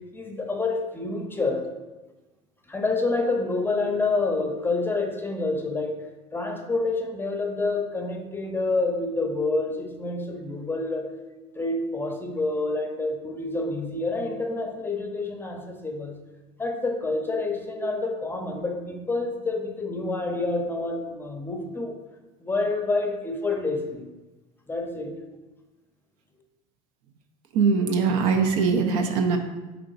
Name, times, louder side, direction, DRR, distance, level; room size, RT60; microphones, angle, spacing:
voice 1, 0.1-1.6 2.7-6.0 6.3-11.1 11.6-16.2 16.6-21.9 22.4-24.1 24.7-25.1, left 3 dB, 10° left, 3 dB, 0.6 m, -28 dB
voice 2, 27.5-29.4, right 5 dB, 80° right, 5 dB, 0.6 m, -22 dB
3.7 x 3.4 x 3.9 m, 1.2 s
supercardioid pair, 90°, 17 cm